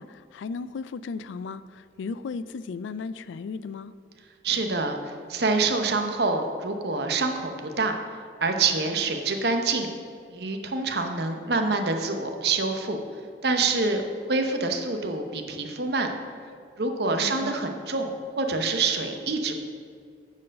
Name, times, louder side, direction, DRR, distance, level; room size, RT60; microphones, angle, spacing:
voice 1, 0.0-3.9 17.2-17.5, left 4 dB, 85° left, 15 dB, 0.3 m, -35 dB
voice 2, 4.4-5.0 5.3-7.9 8.4-9.9 10.3-13.0 13.4-14.0 14.3-16.1 16.8-18.1 18.4-19.5, right 3 dB, 65° right, 5 dB, 0.8 m, -26 dB
9.5 x 4.6 x 6.3 m, 2.2 s
head